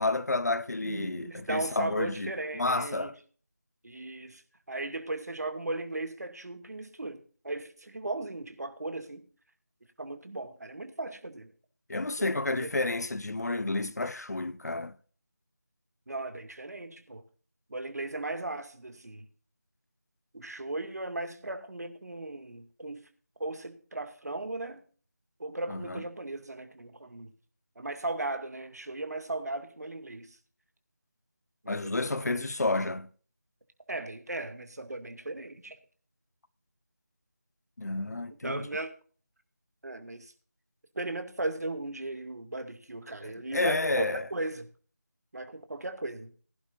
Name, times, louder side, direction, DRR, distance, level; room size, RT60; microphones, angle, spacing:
voice 1, 0.0-3.2 11.9-15.0 25.7-26.0 31.7-33.1 37.8-38.7 43.2-44.3, left 2 dB, 60° left, 1.1 m, -30 dB
voice 2, 0.8-3.1 3.8-4.4 4.7-9.2 10.0-11.5 12.6-12.7 16.1-17.2 17.7-19.2 20.3-23.0 23.4-24.8 25.4-27.3 27.8-30.4 31.6-32.5 33.9-35.8 38.4-38.9 39.8-40.3 41.0-44.6 45.3-46.3, right 2 dB, 60° right, 2.3 m, -37 dB
19.5 x 11.0 x 2.6 m
figure-of-eight pair, 175°, 10 cm